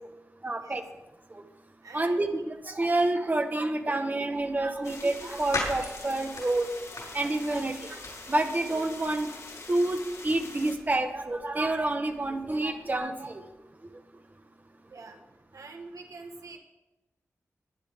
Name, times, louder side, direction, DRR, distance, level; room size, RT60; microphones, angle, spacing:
voice 1, 0.4-0.8 1.9-6.7 7.1-8.0 8.3-9.3 9.7-10.0 10.2-13.4, right 2 dB, 30° right, 6 dB, 1.4 m, -28 dB
voice 2, 1.8-2.3 14.9-15.2 15.5-16.6, right 3 dB, 75° right, 3 dB, 1.6 m, -45 dB
sound 1, 4.3-13.0, left 2 dB, 80° left, 6.0 m, -42 dB
sound 2, 4.8-10.8, left 3 dB, 55° left, 2.0 m, -44 dB
21.5 x 10.5 x 3.7 m, 1.1 s
wide cardioid pair, 105°, 6 cm